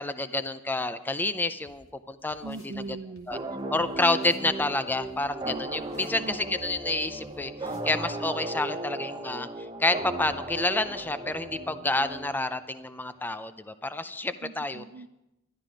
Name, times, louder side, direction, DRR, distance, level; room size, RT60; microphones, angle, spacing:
voice 1, 0.0-2.6 3.3-3.4 3.7-9.5 9.8-14.8, left 2 dB, 10° left, 12 dB, 0.4 m, -29 dB
sound 1, 1.7-1.8 2.3-2.8 3.2-3.3 3.8-3.9 4.2-4.5 4.9-6.2 6.6-6.7 7.2-7.3 7.6-8.0, left 2 dB, 75° left, 1.8 m, -54 dB
voice 2, 2.4-3.4 5.8-6.6 14.4-15.1, right 3 dB, 50° right, 9 dB, 0.4 m, -41 dB
sound 2, 3.3-12.7, right 1 dB, 20° right, 0.8 m, -36 dB
12.5 x 11.5 x 5.0 m, 0.91 s
head